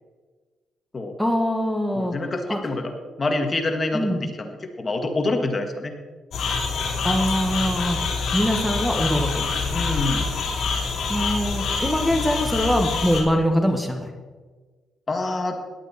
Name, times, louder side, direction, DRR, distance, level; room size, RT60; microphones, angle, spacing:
voice 1, 1.2-2.1 2.5-2.6 3.9-4.2 7.0-8.0 8.3-9.4 11.1-14.1, equal, ahead, 2 dB, 1.7 m, -23 dB
voice 2, 1.9-2.9 3.2-4.5 4.8-5.9 9.7-10.2 15.1-15.6, left 2 dB, 30° left, 5 dB, 1.8 m, -26 dB
sound 1, 6.3-13.2, left 4 dB, 65° left, 3.7 m, -26 dB
17.5 x 11.5 x 4.4 m, 1.4 s
cardioid pair, 90°, 0 cm